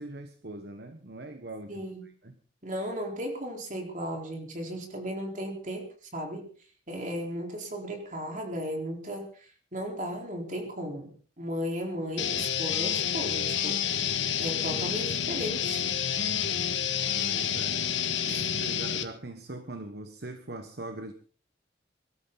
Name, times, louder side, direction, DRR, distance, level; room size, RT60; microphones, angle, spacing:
voice 1, 0.0-2.3 14.7-14.9 17.1-18.0 18.2-21.1, right 2 dB, 60° right, 8 dB, 1.3 m, -42 dB
voice 2, 1.7-2.0 2.6-5.8 6.1-6.5 6.9-13.8 14.4-15.8 18.3-18.5, equal, 45° right, 2 dB, 4.4 m, -35 dB
sound 1, 12.2-19.0, left 8 dB, 85° left, 1.7 m, -29 dB
23.5 x 13.0 x 4.1 m, 0.43 s
head